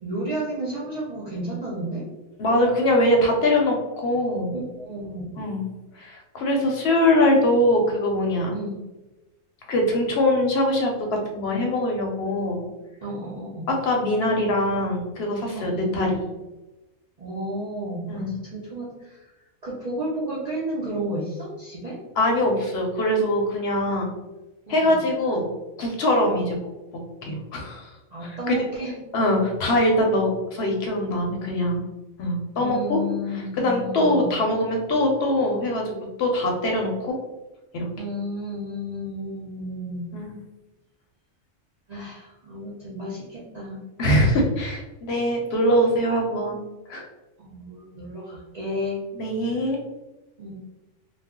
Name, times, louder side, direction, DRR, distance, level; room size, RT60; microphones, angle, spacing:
voice 1, 0.0-2.1 4.5-5.3 8.5-8.8 13.0-13.7 15.5-15.9 17.2-19.3 19.6-22.0 24.7-25.0 26.3-26.6 28.1-28.9 32.6-34.3 38.0-40.1 41.9-43.8 47.4-49.0 50.4-50.5, equal, 55° right, -6 dB, 0.5 m, -32 dB
voice 2, 2.4-4.5 5.4-5.6 5.9-8.6 9.7-12.6 13.7-16.2 18.1-18.3 22.2-24.1 24.7-26.6 26.9-27.9 28.2-28.6 29.1-31.8 32.2-33.0 33.3-37.1 37.7-37.9 40.1-40.3 44.0-46.6 46.9-47.0 49.1-49.8, left 1 dB, 65° left, 1 dB, 0.7 m, -23 dB
2.4 x 2.0 x 3.5 m, 1.1 s
omnidirectional pair, 1.3 m